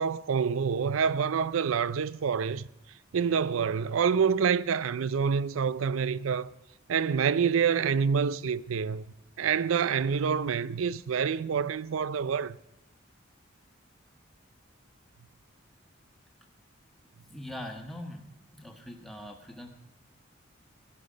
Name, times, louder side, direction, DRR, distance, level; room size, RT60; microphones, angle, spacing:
voice 1, 0.0-2.6 3.1-6.5 6.9-9.0 9.4-12.6, right 6 dB, 85° right, 0.4 m, -27 dB
voice 2, 17.3-18.3 18.5-19.7, left 1 dB, ahead, 1.4 m, -42 dB
16.0 x 11.5 x 5.1 m
head